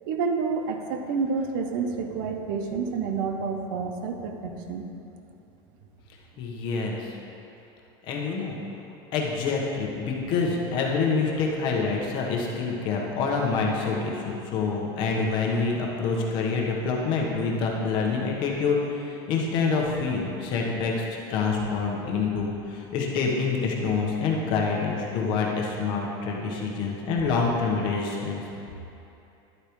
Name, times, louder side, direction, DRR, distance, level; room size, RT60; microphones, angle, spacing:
voice 1, 0.0-4.9, right 5 dB, 55° right, 5 dB, 0.8 m, -29 dB
voice 2, 6.4-7.1 8.1-8.5 9.1-28.4, left 4 dB, 40° left, -1 dB, 1.2 m, -26 dB
11.5 x 8.4 x 3.1 m, 2.8 s
supercardioid pair, 175°, 13 cm